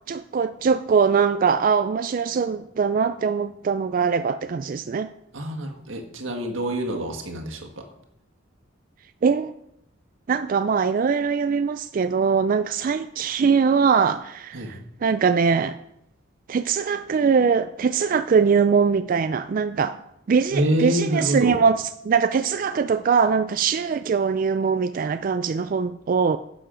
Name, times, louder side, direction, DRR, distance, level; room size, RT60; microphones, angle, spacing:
voice 1, 0.1-5.1 9.2-9.5 10.3-15.8 16.5-20.0 20.3-26.4, right 5 dB, 45° right, 0.3 m, -22 dB
voice 2, 5.3-7.8 14.5-14.7 20.5-21.6, right 1 dB, 90° right, 1.6 m, -26 dB
11.5 x 6.9 x 5.1 m
head